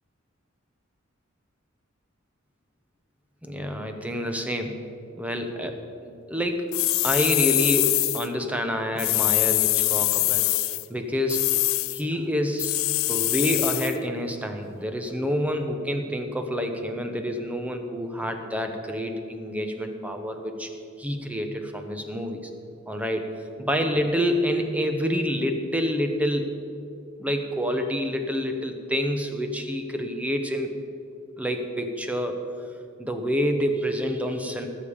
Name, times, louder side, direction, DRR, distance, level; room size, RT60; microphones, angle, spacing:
voice 1, 3.4-4.8 5.2-6.7 7.0-10.5 10.9-11.6 11.9-12.8 13.1-20.7 21.0-22.4 22.9-26.6 27.2-30.7 31.4-32.4 33.0-34.7, equal, 5° right, 5 dB, 0.9 m, -28 dB
sound 1, 6.7-8.3 9.0-10.8 11.3-12.0 12.6-14.0, left 19 dB, 75° left, 0.4 m, -24 dB
19.5 x 7.2 x 5.1 m, 2.6 s
head